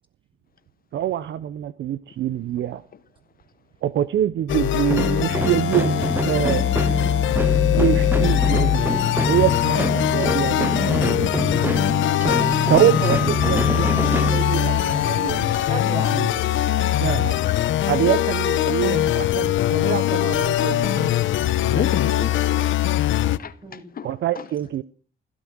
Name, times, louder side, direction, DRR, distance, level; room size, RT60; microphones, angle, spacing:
voice 1, 0.9-2.8 3.8-6.7 7.8-9.0 9.3-11.3 12.7-15.7 15.9-16.3 17.0-17.4 17.8-21.2 21.7-21.9 24.0-24.8, right 11 dB, 65° right, 0.8 m, -25 dB
sound 1, 4.5-23.4, left 13 dB, 75° left, 0.9 m, -22 dB
sound 2, 4.9-15.0, equal, 10° right, 1.8 m, -25 dB
voice 2, 11.6-12.6 15.7-16.3 21.0-21.3 23.6-23.9, right 1 dB, 25° right, 6.7 m, -36 dB
voice 3, 21.7-22.7 23.1-23.5 24.0-24.1, left 8 dB, 45° left, 0.9 m, -31 dB
16.0 x 14.0 x 6.3 m
cardioid pair, 90°, 20 cm